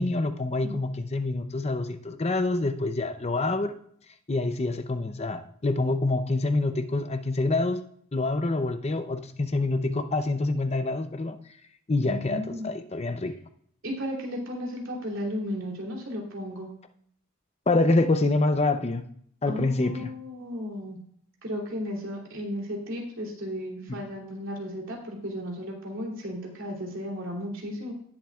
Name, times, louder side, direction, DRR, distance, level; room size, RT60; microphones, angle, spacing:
voice 1, 0.0-3.7 4.3-7.8 8.1-11.4 11.9-13.3 17.7-19.0 19.4-20.1 23.9-24.1, left 2 dB, 30° left, 9 dB, 0.6 m, -26 dB
voice 2, 12.0-12.7 13.8-16.7 19.5-21.0 21.4-27.9, equal, 65° right, -1 dB, 3.1 m, -34 dB
18.0 x 7.3 x 2.4 m, 0.64 s
head